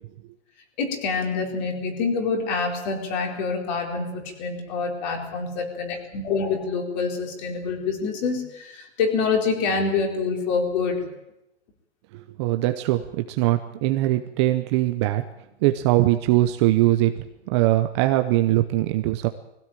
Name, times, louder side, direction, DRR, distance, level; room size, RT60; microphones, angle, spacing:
voice 1, 0.8-11.1, left 4 dB, 40° left, 3 dB, 4.5 m, -26 dB
voice 2, 12.1-15.3 15.6-17.1 17.5-19.3, right 15 dB, 25° right, 7 dB, 0.7 m, -21 dB
21.0 x 16.5 x 9.0 m, 0.86 s
hypercardioid pair, 165°, 35 cm